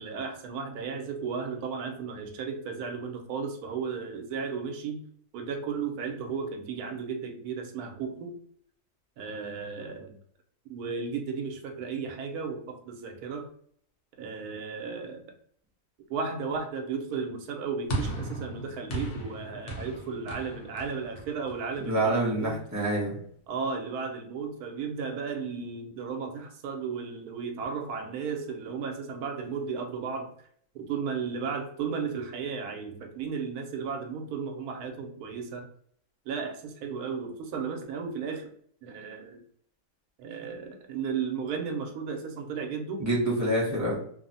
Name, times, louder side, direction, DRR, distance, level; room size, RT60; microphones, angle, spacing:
voice 1, 0.0-5.0 5.3-8.3 9.2-10.1 10.7-13.5 14.2-15.2 16.1-22.6 23.5-30.3 30.7-35.7 36.3-38.5 38.8-39.4 40.2-43.1, right 5 dB, 80° right, 4 dB, 1.1 m, -34 dB
sound 1, 17.9-22.3, right 2 dB, 65° left, 1.2 m, -36 dB
voice 2, 21.8-23.1 43.0-43.9, right 1 dB, 25° right, -5 dB, 0.4 m, -26 dB
3.1 x 2.0 x 2.5 m, 0.63 s
omnidirectional pair, 1.6 m